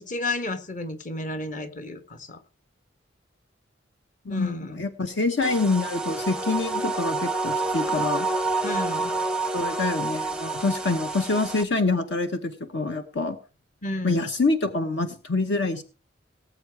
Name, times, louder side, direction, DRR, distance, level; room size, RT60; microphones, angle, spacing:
voice 1, 0.0-2.4 4.3-4.8 8.6-9.1 13.8-14.3, left 2 dB, 40° left, 10 dB, 1.4 m, -32 dB
voice 2, 4.2-8.3 9.5-13.4 14.0-15.8, left 3 dB, 65° left, 8 dB, 1.1 m, -26 dB
sound 1, 5.4-11.6, right 3 dB, 5° right, 0.6 m, -28 dB
18.5 x 7.7 x 4.6 m, 0.36 s
head